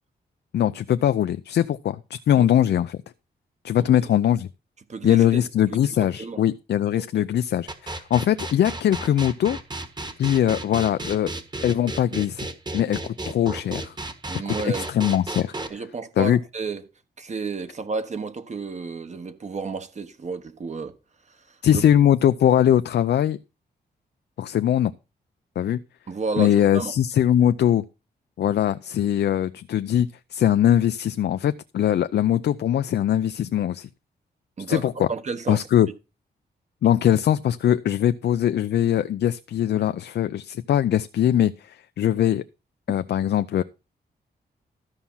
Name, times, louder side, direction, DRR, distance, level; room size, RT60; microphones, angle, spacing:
voice 1, 0.5-3.0 3.6-4.5 5.0-9.6 10.2-11.3 11.6-12.5 12.7-13.9 14.6-15.5 16.2-16.4 21.6-23.4 24.4-24.9 25.6-25.8 26.4-27.8 28.4-33.9 34.7-35.1 35.5-35.9 36.8-42.4 42.9-43.6, left 10 dB, 85° left, 0.5 m, -21 dB
voice 2, 4.9-5.4 5.8-6.4 7.2-7.3 14.3-14.9 15.7-16.8 17.2-20.9 21.3-21.4 21.7-21.8 26.1-26.9 34.6-34.8 35.1-35.7, right 4 dB, 45° right, 1.3 m, -31 dB
sound 1, 7.7-15.7, right 2 dB, 25° right, 1.5 m, -33 dB
13.0 x 5.9 x 5.6 m
wide cardioid pair, 115°, 17 cm